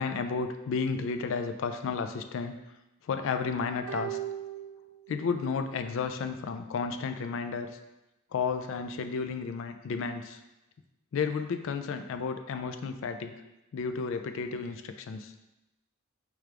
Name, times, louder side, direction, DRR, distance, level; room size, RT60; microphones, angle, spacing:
voice 1, 0.0-2.5 3.0-4.2 5.1-7.7 8.3-10.4 11.1-13.3 13.7-15.3, left 5 dB, 65° left, 8 dB, 0.3 m, -32 dB
sound 1, 3.9-5.5 5.8-5.9, right 10 dB, 65° right, 0.6 m, -38 dB
4.4 x 2.4 x 4.8 m, 0.97 s
head